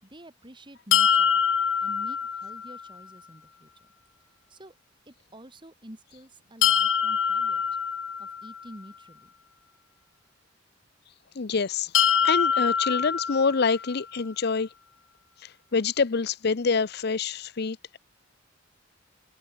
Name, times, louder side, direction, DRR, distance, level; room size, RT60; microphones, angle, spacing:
voice 1, 0.0-1.4 1.8-3.9 4.5-4.7 5.1-7.6 8.2-9.3, right 1 dB, 25° right, 6.4 m, -48 dB
sound 1, 0.9-2.9 6.6-8.7 11.9-14.0, left 8 dB, 75° left, 1.3 m, -24 dB
voice 2, 11.4-14.7 15.7-18.0, left 5 dB, 55° left, 0.7 m, -26 dB
head